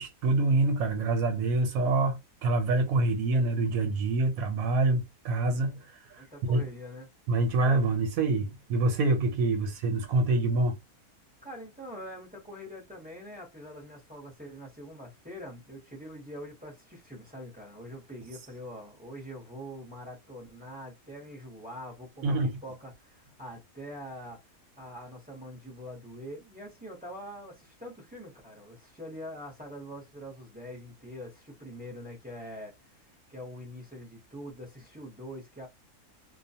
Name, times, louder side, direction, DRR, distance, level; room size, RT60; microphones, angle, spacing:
voice 1, 0.0-5.8 6.1-6.6 7.3-10.8 22.2-22.5, right 2 dB, 85° right, 1.0 m, -26 dB
voice 2, 6.2-7.1 11.4-24.4 24.8-35.7, equal, 10° right, 0.7 m, -44 dB
2.4 x 2.2 x 2.7 m
omnidirectional pair, 1.5 m